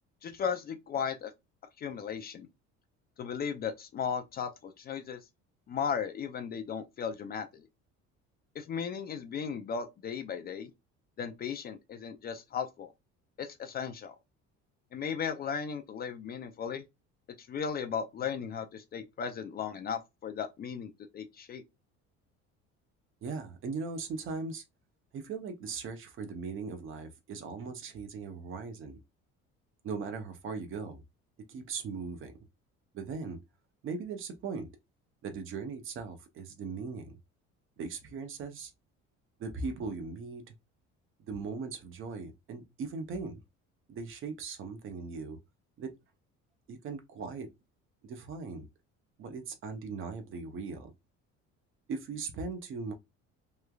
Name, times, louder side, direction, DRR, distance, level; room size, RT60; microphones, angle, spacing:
voice 1, 0.2-1.3 1.8-2.5 3.2-5.2 5.7-7.7 8.6-10.7 11.2-12.9 13.4-14.2 14.9-16.8 17.4-21.6, left 7 dB, 35° left, 0.4 m, -36 dB
voice 2, 23.2-24.6 25.1-29.0 29.8-31.0 31.5-32.3 32.9-33.4 33.8-34.7 35.2-37.2 37.8-38.7 39.4-40.5 41.3-43.4 43.9-45.4 45.8-45.9 46.7-47.5 48.0-48.6 49.2-50.9 51.9-52.9, right 4 dB, 45° right, 0.6 m, -39 dB
3.1 x 2.3 x 2.2 m
cardioid pair, 140°, 29 cm